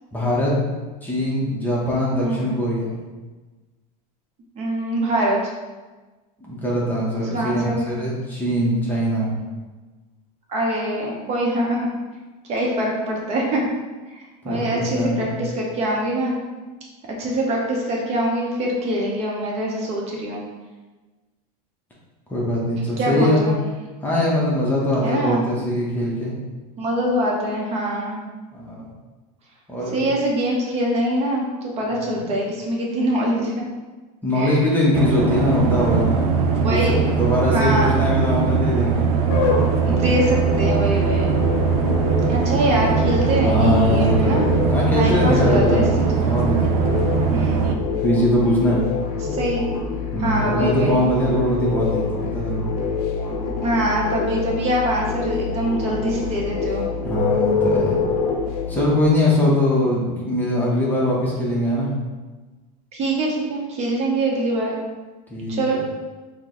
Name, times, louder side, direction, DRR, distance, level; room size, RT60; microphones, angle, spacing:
voice 1, 0.1-0.5 1.0-3.0 6.5-9.3 14.4-15.3 22.3-23.4 24.0-26.3 28.5-28.8 29.7-30.0 32.1-32.2 34.2-36.3 36.5-39.1 43.5-45.8 46.2-46.9 48.0-48.8 49.2-49.4 50.1-52.7 57.0-58.1 58.7-61.9 65.3-65.8, left 1 dB, 10° left, -5 dB, 0.7 m, -21 dB
voice 2, 2.2-2.6 4.6-5.5 7.2-8.0 10.5-11.9 12.5-13.6 14.1-16.4 17.2-20.4 23.0-23.6 25.0-25.4 26.8-28.2 29.9-33.6 34.3-34.6 36.5-37.1 37.5-38.0 39.9-41.3 42.3-44.5 45.0-45.8 46.1-46.3 47.3-47.8 49.3-49.7 50.2-51.0 53.6-56.9 62.9-64.7 65.5-65.8, right 1 dB, 35° right, -2 dB, 0.7 m, -24 dB
sound 1, 34.9-47.7, right 6 dB, 85° right, 0.5 m, -21 dB
sound 2, 39.3-58.9, left 5 dB, 75° left, 0.7 m, -26 dB
4.3 x 2.1 x 3.7 m, 1.2 s
supercardioid pair, 145°, 19 cm